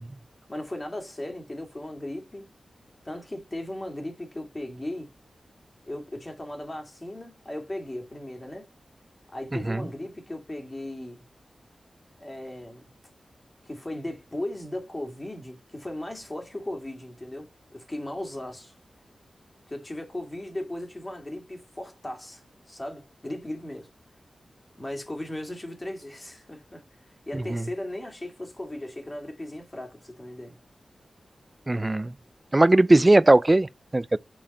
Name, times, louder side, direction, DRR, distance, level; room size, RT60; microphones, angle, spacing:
voice 1, 0.5-2.5 3.0-5.1 5.8-8.7 9.3-11.2 12.2-12.9 13.6-18.8 19.7-22.4 22.7-23.9 24.8-26.9 27.3-30.6, left 1 dB, 25° left, 2.4 m, -37 dB
voice 2, 31.7-32.1 32.5-34.2, right 2 dB, 25° right, 0.4 m, -19 dB
7.5 x 4.3 x 4.3 m
wide cardioid pair, 75°, 0 cm